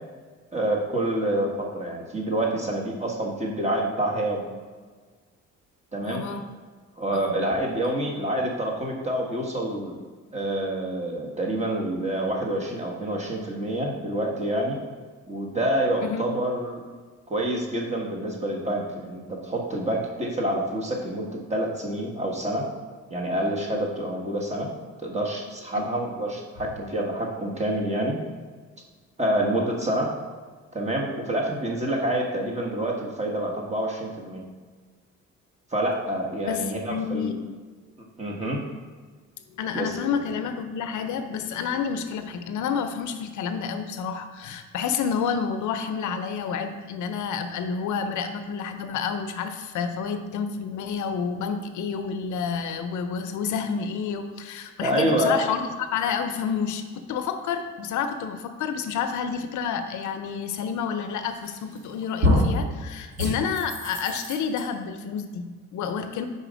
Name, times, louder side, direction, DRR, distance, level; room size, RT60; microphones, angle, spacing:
voice 1, 0.5-4.5 5.9-6.2 7.0-10.0 10.3-14.8 15.3-16.8 17.3-22.7 23.1-24.7 25.0-28.2 29.2-30.1 30.7-34.4 35.7-37.4 38.2-38.6 39.7-40.1 54.8-55.3, right 1 dB, 20° right, -1 dB, 1.2 m, -27 dB
voice 2, 6.0-6.4 7.1-7.3 16.0-16.3 25.8-26.1 36.5-37.4 39.5-66.3, left 6 dB, 75° left, 8 dB, 0.6 m, -29 dB
sound 1, 61.4-61.8 62.2-62.6 63.2-64.6, left 1 dB, 55° right, 1.4 m, -24 dB
4.9 x 4.0 x 5.1 m, 1.5 s
cardioid pair, 90°, 30 cm